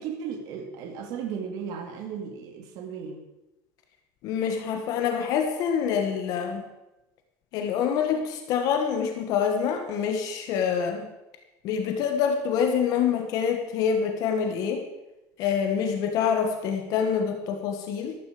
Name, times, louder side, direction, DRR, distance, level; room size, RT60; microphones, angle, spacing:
voice 1, 0.0-3.2, right 7 dB, 50° right, 4 dB, 2.1 m, -35 dB
voice 2, 4.2-6.6 7.5-11.1 11.6-14.8 15.4-18.2, left 7 dB, 50° left, 4 dB, 1.6 m, -26 dB
13.5 x 13.0 x 5.1 m, 0.99 s
cardioid pair, 170°, 8 cm